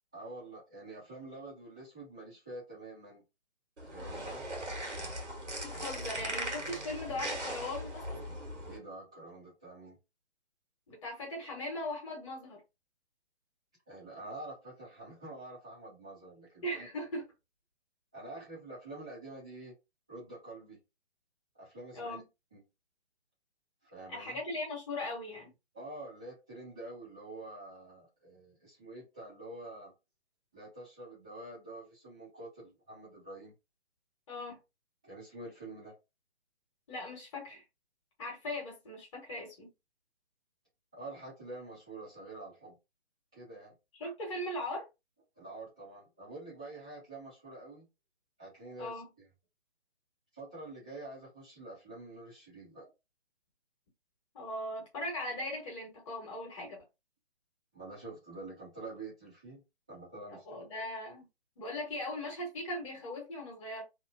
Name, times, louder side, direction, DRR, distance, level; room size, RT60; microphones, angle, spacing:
voice 1, 0.1-3.2 3.8-4.4 8.7-10.0 13.9-16.9 18.1-19.7 20.1-20.8 21.5-22.2 22.5-22.6 23.8-24.4 25.7-29.9 30.5-33.5 35.0-35.9 40.9-42.8 43.3-43.7 45.4-47.9 48.4-49.3 50.3-52.9 57.7-59.6 59.9-60.6, right 2 dB, 5° right, 0.4 m, -47 dB
sound 1, 3.8-8.8, right 1 dB, 85° right, 1.2 m, -39 dB
voice 2, 5.6-8.2 10.9-12.6 16.6-17.2 21.9-22.2 24.1-25.5 34.3-34.6 36.9-37.6 38.2-39.7 44.0-44.9 48.8-49.0 54.3-56.8 60.5-61.3 61.6-63.8, left 1 dB, 30° left, 1.1 m, -39 dB
2.8 x 2.1 x 2.5 m
figure-of-eight pair, 135°, 34 cm